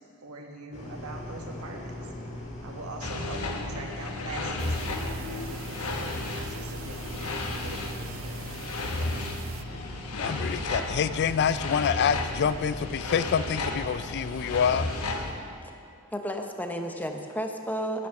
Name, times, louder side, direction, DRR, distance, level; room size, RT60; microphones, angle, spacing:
voice 1, 0.2-2.0 2.6-8.4 9.0-9.3, right 2 dB, 75° right, 2 dB, 1.5 m, -42 dB
sound 1, 0.7-15.3, left 1 dB, 30° left, 2.0 m, -41 dB
sound 2, 3.0-15.3, left 2 dB, 75° left, 1.2 m, -34 dB
sound 3, 4.6-9.6, right 7 dB, 60° right, 0.5 m, -44 dB
voice 2, 10.1-14.9, left 7 dB, 50° left, 15 dB, 0.3 m, -27 dB
voice 3, 16.1-18.1, equal, 10° left, 4 dB, 0.7 m, -32 dB
10.5 x 9.0 x 7.0 m, 2.7 s
head